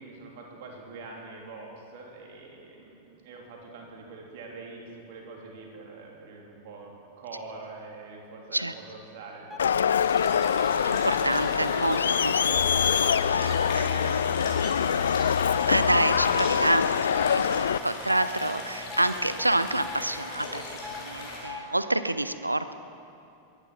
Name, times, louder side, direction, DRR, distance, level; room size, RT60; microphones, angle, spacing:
voice 1, 0.0-10.3 12.5-15.3, right 3 dB, 50° right, -1 dB, 3.2 m, -45 dB
sound 1, 9.5-9.7 10.3-10.5 11.1-11.3 11.8-12.0 13.4-13.6 14.6-14.8 15.5-15.7 17.1-17.3 18.1-18.3 18.9-19.1 19.8-20.0 20.8-21.0 21.4-21.6, left 5 dB, 5° left, 1.6 m, -40 dB
Crowd, 9.6-17.8, left 7 dB, 65° left, 0.4 m, -24 dB
sound 2, 9.9-21.4, left 2 dB, 45° left, 4.5 m, -39 dB
voice 2, 10.8-12.6 13.2-13.9 15.6-22.7, right 1 dB, 85° right, 12 dB, 0.6 m, -28 dB
22.5 x 11.0 x 5.9 m, 2.7 s
figure-of-eight pair, 90°, 0 cm